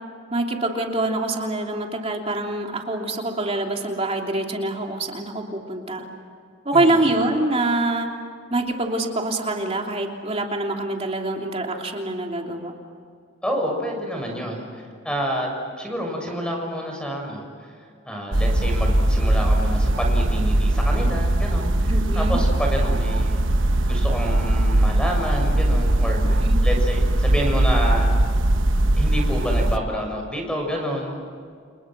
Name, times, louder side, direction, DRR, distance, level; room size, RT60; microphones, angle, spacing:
voice 1, 0.3-6.0 6.6-8.1 8.5-12.7 21.9-22.4 26.1-26.6, right 2 dB, 30° right, 1 dB, 3.1 m, -25 dB
voice 2, 6.7-7.1 13.4-15.5 15.8-17.4 18.1-23.4 23.9-28.1 28.9-31.3, equal, 5° left, 1 dB, 6.8 m, -28 dB
sound 1, 18.3-29.8, right 1 dB, 65° right, 1.2 m, -20 dB
30.0 x 29.5 x 6.2 m, 2.2 s
head